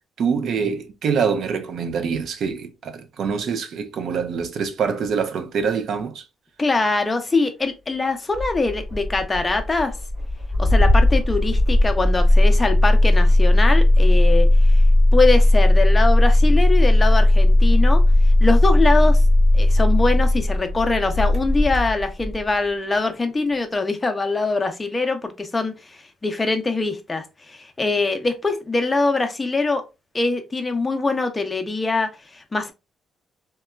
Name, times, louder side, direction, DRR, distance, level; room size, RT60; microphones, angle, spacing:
voice 1, 0.2-6.2, right 6 dB, 65° right, 0.5 m, -25 dB
voice 2, 6.6-9.9 10.6-14.8 15.1-18.0 18.4-19.2 19.5-29.8 30.1-32.7, left 3 dB, 25° left, 0.5 m, -23 dB
Engine starting, 8.3-22.5, left 1 dB, 40° right, 1.2 m, -16 dB
2.9 x 2.2 x 2.3 m
cardioid pair, 90°, 0 cm